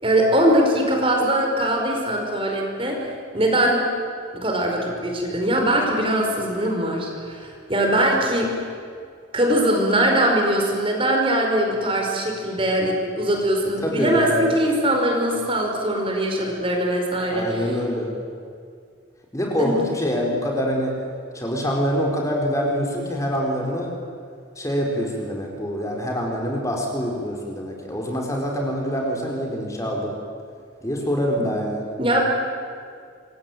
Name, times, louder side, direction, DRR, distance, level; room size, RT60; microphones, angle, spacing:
voice 1, 0.0-3.0 3.3-3.9 4.3-8.5 9.3-17.6 19.6-19.8 32.0-32.2, right 1 dB, 30° right, 1 dB, 5.1 m, -21 dB
voice 2, 13.8-14.5 17.3-18.1 19.3-21.0 21.3-23.9 24.6-30.1 30.8-32.0, equal, 15° left, 0 dB, 4.6 m, -25 dB
27.0 x 23.5 x 9.4 m, 2.3 s
head